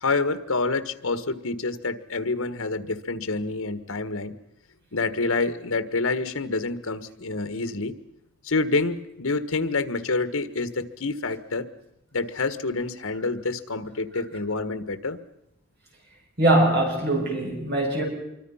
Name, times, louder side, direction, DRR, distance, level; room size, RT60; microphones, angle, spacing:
voice 1, 0.0-4.3 4.9-7.9 8.4-11.7 12.1-15.2, left 3 dB, 80° left, 11 dB, 1.5 m, -27 dB
voice 2, 16.4-18.0, right 1 dB, 50° right, 0 dB, 7.1 m, -22 dB
26.0 x 24.0 x 5.7 m, 0.87 s
head